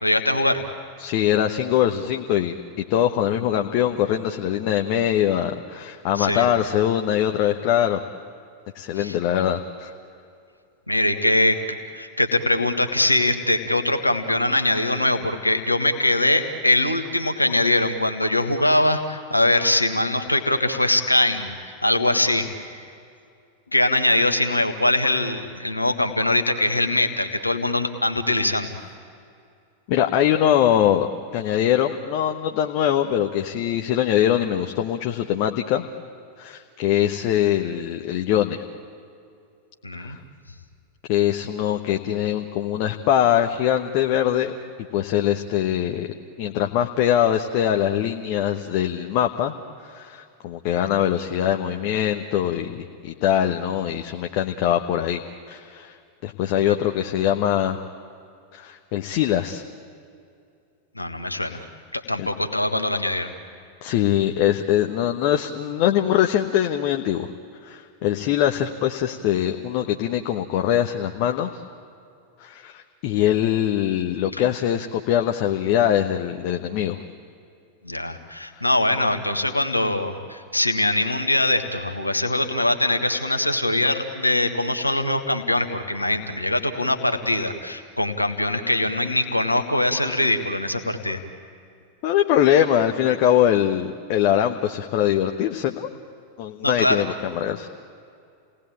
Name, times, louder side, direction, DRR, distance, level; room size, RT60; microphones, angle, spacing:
voice 1, 0.0-0.6 6.1-6.5 9.0-9.1 10.9-11.6 11.9-21.6 21.8-22.8 23.7-28.7 39.8-40.2 60.9-61.6 61.9-63.3 77.8-91.2 96.6-97.0, left 1 dB, 85° left, 6 dB, 1.6 m, -22 dB
voice 2, 1.0-8.0 8.7-9.9 29.9-31.1 31.3-35.9 36.4-38.6 40.0-40.2 41.1-44.5 44.9-46.1 46.4-49.5 49.8-55.2 55.5-55.9 56.2-57.8 58.5-59.6 62.2-62.3 63.8-67.3 67.6-71.6 72.4-77.0 92.0-95.9 96.4-97.7, left 11 dB, 45° left, 4 dB, 1.1 m, -22 dB
30.0 x 18.5 x 8.8 m, 2.4 s
figure-of-eight pair, 90°, 0 cm